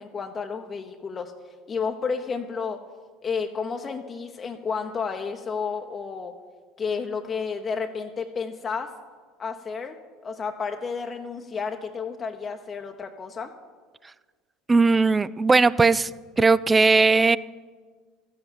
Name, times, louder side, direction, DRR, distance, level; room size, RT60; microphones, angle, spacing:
voice 1, 0.0-1.3 1.7-2.8 3.2-6.4 6.8-8.9 9.4-13.5, left 5 dB, 35° left, 4 dB, 0.9 m, -31 dB
voice 2, 14.7-16.1 16.4-17.4, right 3 dB, 20° right, 19 dB, 0.4 m, -18 dB
13.5 x 8.0 x 7.3 m, 1.5 s
hypercardioid pair, 70°, 0 cm